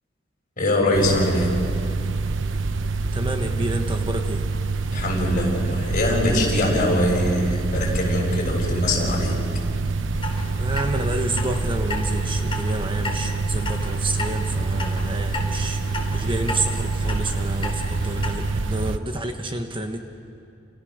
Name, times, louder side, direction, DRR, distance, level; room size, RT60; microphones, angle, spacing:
voice 1, 0.6-1.6 4.9-9.4, left 1 dB, 45° left, 0 dB, 7.3 m, -22 dB
sound 1, 0.9-19.0, right 3 dB, 75° right, 0.9 m, -26 dB
voice 2, 3.1-4.5 10.6-15.8 16.1-20.0, right 2 dB, 25° right, 5 dB, 1.3 m, -29 dB
Clock, 10.2-18.3, left 1 dB, 30° left, 4.0 m, -34 dB
29.5 x 29.0 x 6.7 m, 2.5 s
head